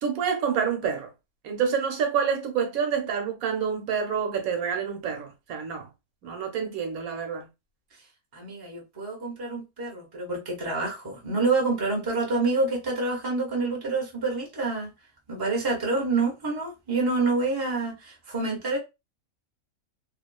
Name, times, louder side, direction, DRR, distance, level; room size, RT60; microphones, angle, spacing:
voice 1, 0.0-1.1 1.4-5.9 6.2-7.5, right 6 dB, 75° right, 1.1 m, -28 dB
voice 2, 8.3-14.9 15.3-18.8, right 3 dB, 25° right, 0.5 m, -27 dB
2.6 x 2.4 x 2.2 m
omnidirectional pair, 1.5 m